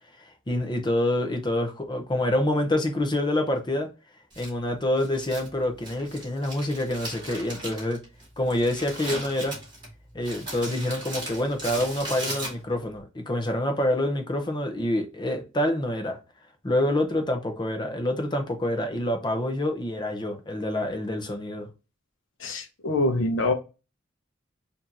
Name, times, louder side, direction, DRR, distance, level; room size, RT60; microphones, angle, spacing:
voice 1, 0.5-3.9 4.4-8.0 8.4-9.6 10.1-16.2 16.6-21.7, left 1 dB, 25° left, 0.7 m, -27 dB
Crumpling crinkling, 4.3-12.9, right 1 dB, 25° right, 2.2 m, -38 dB
voice 2, 22.4-23.5, left 2 dB, 85° left, 0.9 m, -25 dB
4.8 x 2.8 x 2.7 m
head